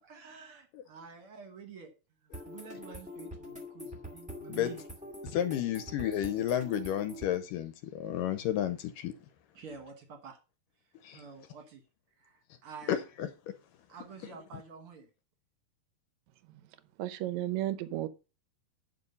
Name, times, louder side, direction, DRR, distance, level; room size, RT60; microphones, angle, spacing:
voice 1, 0.0-1.9 2.2-4.8 9.5-10.4 11.1-11.8 12.2-13.0 13.9-15.1, right 5 dB, 60° right, 1.4 m, -49 dB
sound 1, 2.3-7.4, equal, 5° right, 0.8 m, -45 dB
voice 2, 5.2-9.1 11.0-11.2 12.9-13.3, left 11 dB, 80° left, 2.2 m, -32 dB
voice 3, 17.0-18.1, right 14 dB, 80° right, 1.6 m, -33 dB
9.6 x 5.5 x 5.3 m
omnidirectional pair, 4.1 m